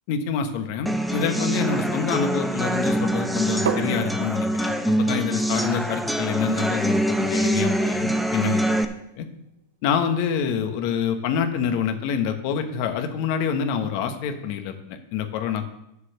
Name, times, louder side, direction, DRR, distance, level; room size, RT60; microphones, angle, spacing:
voice 1, 0.1-8.8 9.2-9.3 9.8-15.7, left 7 dB, 60° left, 7 dB, 1.3 m, -26 dB
sound 1, 0.9-8.8, right 1 dB, ahead, 0.8 m, -24 dB
sound 2, 3.7-9.3, right 6 dB, 80° right, 0.8 m, -37 dB
7.3 x 6.5 x 6.6 m, 0.82 s
hypercardioid pair, 110°, 0 cm